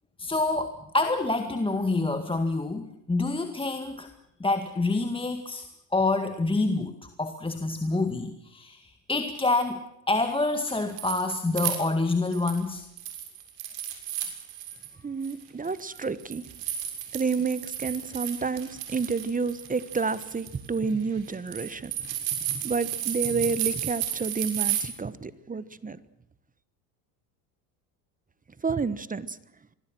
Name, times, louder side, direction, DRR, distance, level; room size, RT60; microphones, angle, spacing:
voice 1, 0.2-4.1 4.4-5.7 5.9-12.9, left 2 dB, 10° left, 7 dB, 2.0 m, -27 dB
sound 1, 10.6-12.6 13.0-14.9 15.2-24.8, right 11 dB, 60° right, 6.9 m, -33 dB
voice 2, 15.0-16.4 17.1-21.9 22.5-26.0 28.6-29.3, right 4 dB, 15° right, 16 dB, 1.3 m, -29 dB
25.5 x 21.5 x 6.2 m, 0.82 s
supercardioid pair, 95°, 49 cm